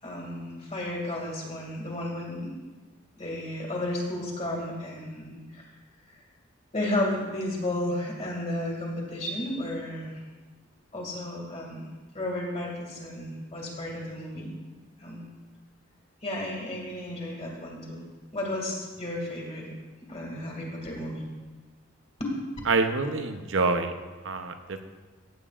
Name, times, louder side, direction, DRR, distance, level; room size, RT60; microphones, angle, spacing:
voice 1, 0.0-2.5 3.2-5.7 6.7-10.1 10.9-11.8 12.1-14.5 15.0-15.2 16.2-18.0 18.3-19.6 20.1-21.2 22.2-22.3, left 1 dB, 30° left, -2 dB, 2.3 m, -33 dB
voice 2, 22.7-23.9 24.2-24.8, right 3 dB, 75° right, 7 dB, 0.8 m, -26 dB
15.5 x 9.0 x 2.5 m, 1.3 s
head